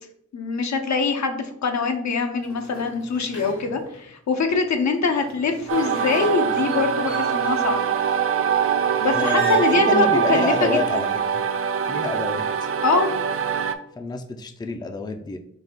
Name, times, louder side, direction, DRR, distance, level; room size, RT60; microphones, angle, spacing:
voice 1, 0.3-7.9 9.0-10.8 12.8-13.1, left 4 dB, 70° left, 6 dB, 0.7 m, -23 dB
sound 1, 2.4-4.1 4.9-7.8 9.0-9.7, left 3 dB, 85° left, 1.6 m, -41 dB
sound 2, 5.7-13.7, right 8 dB, 50° right, 0.4 m, -23 dB
voice 2, 9.1-11.1 11.3-11.4 11.9-12.7 14.0-15.4, left 3 dB, 15° left, 6 dB, 0.4 m, -28 dB
4.0 x 2.7 x 3.6 m, 0.70 s
cardioid pair, 75°, 29 cm